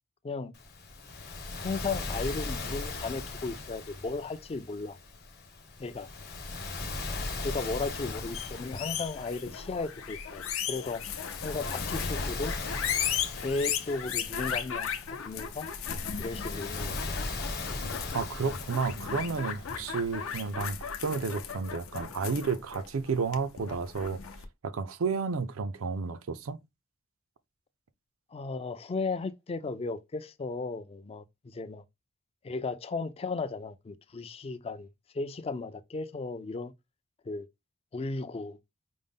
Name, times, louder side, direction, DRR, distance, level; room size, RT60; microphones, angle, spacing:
Waves surf, 0.5-20.5, left 3 dB, 50° left, 1.0 m, -39 dB
voice 1, 1.6-5.0 5.8-6.1 7.4-11.0 11.4-12.5 13.4-14.9 15.2-15.7 16.2-17.1 19.7-19.8 28.3-31.8 32.4-34.9 35.1-36.7 37.3-37.5 37.9-38.6, left 3 dB, 30° left, 0.3 m, -35 dB
sound 1, 7.9-24.4, left 7 dB, 75° left, 0.6 m, -36 dB
voice 2, 18.1-24.2 24.6-26.6, right 5 dB, 75° right, 0.5 m, -31 dB
5.1 x 2.1 x 3.5 m
head